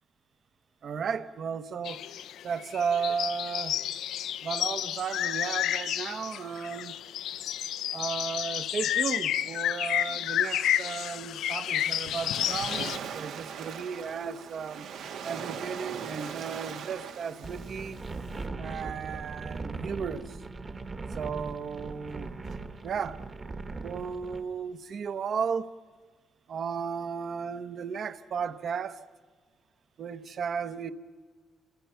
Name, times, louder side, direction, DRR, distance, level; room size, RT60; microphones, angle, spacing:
voice 1, 0.8-2.1 2.4-3.8 4.4-7.0 7.9-12.9 13.1-14.9 15.2-18.2 18.6-20.4 21.1-22.6 22.8-23.2 23.8-25.7 26.5-29.0 30.0-30.9, right 6 dB, 45° right, 1.0 m, -34 dB
sound 1, 1.8-13.0, left 11 dB, 75° left, 0.7 m, -31 dB
Waves surf, 11.7-18.5, right 7 dB, 85° right, 2.3 m, -40 dB
sound 2, 17.4-24.4, right 3 dB, 25° right, 1.3 m, -39 dB
29.5 x 25.0 x 5.7 m
cardioid pair, 180°, 0 cm